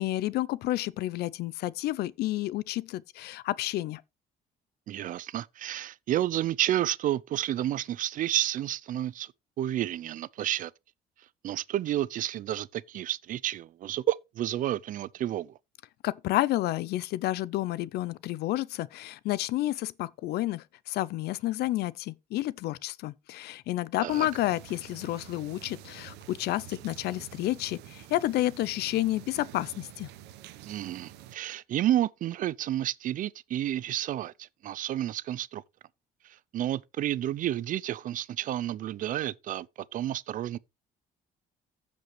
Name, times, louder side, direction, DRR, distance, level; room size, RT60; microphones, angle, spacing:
voice 1, 0.0-4.0 16.0-30.1, left 16 dB, 75° left, 0.5 m, -30 dB
voice 2, 4.9-9.3 9.6-10.7 11.4-15.5 24.0-24.3 30.7-35.6 36.5-39.7 39.9-40.6, right 12 dB, 55° right, 0.4 m, -30 dB
sound 1, 24.1-31.3, right 12 dB, 90° right, 0.9 m, -48 dB
15.0 x 5.2 x 3.1 m
cardioid pair, 110°, 17 cm